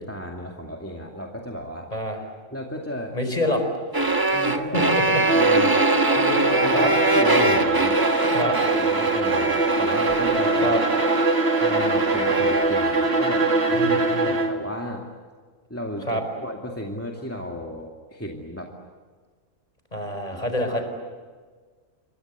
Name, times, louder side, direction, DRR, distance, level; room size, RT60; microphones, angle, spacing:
voice 1, 0.0-1.9 2.5-3.6 4.3-5.8 6.1-10.8 11.6-15.0 15.7-18.7 20.3-20.8, equal, 10° left, 0 dB, 2.4 m, -34 dB
voice 2, 1.9-2.2 3.1-3.6 4.5-5.2 6.7-6.9 8.3-8.5 10.6-10.8 13.7-14.3 16.1-16.2 19.9-20.9, equal, 30° left, 6 dB, 4.7 m, -26 dB
sound 1, 3.9-12.8, right 2 dB, 15° right, 1.2 m, -23 dB
Bowed string instrument, 5.2-14.7, right 3 dB, 50° right, 2.6 m, -22 dB
29.0 x 24.0 x 8.2 m, 1.5 s
omnidirectional pair, 1.4 m